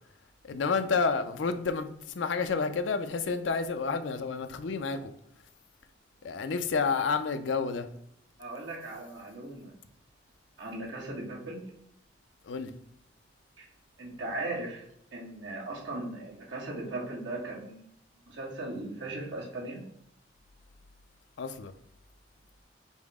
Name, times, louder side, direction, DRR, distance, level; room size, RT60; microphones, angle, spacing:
voice 1, 0.4-1.9 2.1-5.1 6.2-7.9 12.5-12.7 21.4-21.7, left 5 dB, 90° left, 9 dB, 0.5 m, -29 dB
voice 2, 8.4-9.7 10.6-11.6 13.6-13.7 14.0-14.8 15.1-17.9 18.3-19.8, right 2 dB, 80° right, -3 dB, 1.3 m, -38 dB
5.4 x 2.1 x 4.7 m, 0.75 s
head